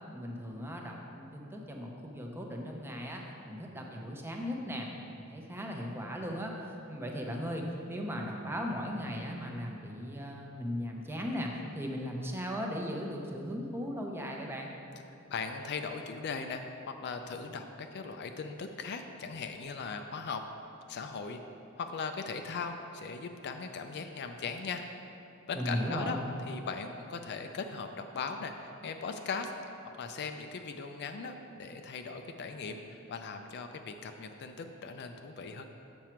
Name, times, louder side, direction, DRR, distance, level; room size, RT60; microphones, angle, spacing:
voice 1, 0.1-4.9 5.1-14.7 25.5-26.3, equal, 10° right, 0 dB, 0.7 m, -37 dB
voice 2, 15.3-16.6 17.0-20.4 20.9-21.4 21.8-24.8 25.5-26.2 26.5-29.5 30.0-35.7, left 5 dB, 50° left, 6 dB, 0.4 m, -39 dB
7.3 x 6.1 x 4.5 m, 2.7 s
head